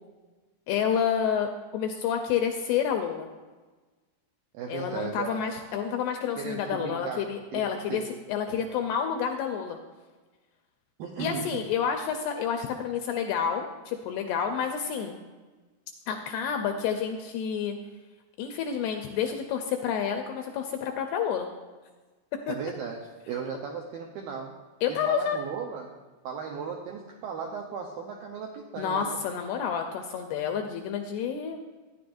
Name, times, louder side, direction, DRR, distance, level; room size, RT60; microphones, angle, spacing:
voice 1, 0.7-3.3 4.7-8.0 8.3-9.8 11.2-15.2 16.1-17.8 18.4-21.5 22.3-22.5 24.8-25.4 28.8-31.6, left 7 dB, 85° left, 4 dB, 2.3 m, -29 dB
voice 2, 4.5-5.4 6.4-7.2 7.5-7.6 7.9-8.0 8.5-8.8 11.0-11.6 22.5-24.6 24.9-26.0 26.2-29.2, right 6 dB, 90° right, 1 dB, 2.0 m, -36 dB
14.0 x 10.0 x 2.6 m, 1.3 s
omnidirectional pair, 5.1 m